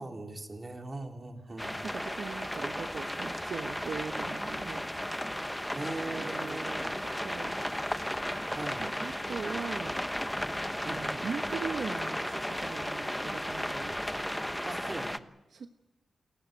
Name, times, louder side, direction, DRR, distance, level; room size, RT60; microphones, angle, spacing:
voice 1, 0.0-1.8 5.7-7.0 8.5-8.9 10.8-11.3 14.7-15.1, right 2 dB, 30° right, 3 dB, 3.8 m, -40 dB
sound 1, 1.6-15.2, equal, 5° left, 1.1 m, -34 dB
voice 2, 1.9-4.8 6.1-6.7 7.0-7.6 8.8-10.0 10.8-13.9 15.5-15.7, right 5 dB, 70° right, 7 dB, 1.1 m, -40 dB
28.5 x 15.5 x 9.2 m, 0.99 s
cardioid pair, 85°, 0 cm